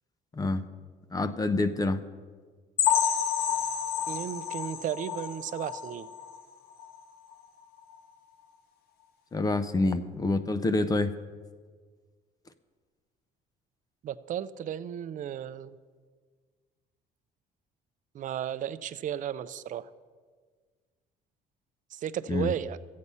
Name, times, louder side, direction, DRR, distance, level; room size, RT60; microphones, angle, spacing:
voice 1, 0.3-0.6 1.1-2.0 9.3-11.1 22.3-22.5, left 2 dB, 20° left, 11 dB, 0.6 m, -27 dB
sound 1, 2.8-6.4 6.8-7.0 7.3-7.4 7.9-8.0, left 9 dB, 70° left, 0.9 m, -29 dB
voice 2, 4.1-6.1 14.0-15.8 18.1-19.9 21.9-22.8, right 10 dB, 50° right, 13 dB, 0.5 m, -34 dB
13.5 x 8.5 x 5.5 m, 1.6 s
cardioid pair, 110°, 17 cm